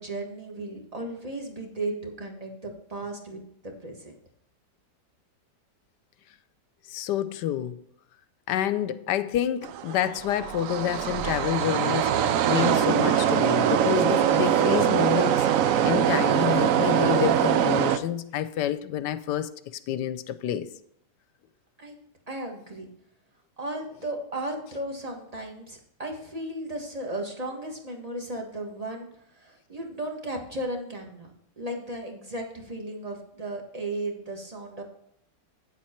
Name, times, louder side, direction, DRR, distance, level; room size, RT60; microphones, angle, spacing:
voice 1, 0.0-4.1 21.8-21.9 22.3-22.9 23.6-34.8, right 1 dB, 20° right, 1.5 m, -35 dB
voice 2, 6.9-7.8 8.5-19.5 19.9-20.7, left 10 dB, 75° left, 1.2 m, -28 dB
sound 1, 9.6-18.0, right 9 dB, 70° right, 0.8 m, -23 dB
9.3 x 7.5 x 4.4 m
omnidirectional pair, 1.9 m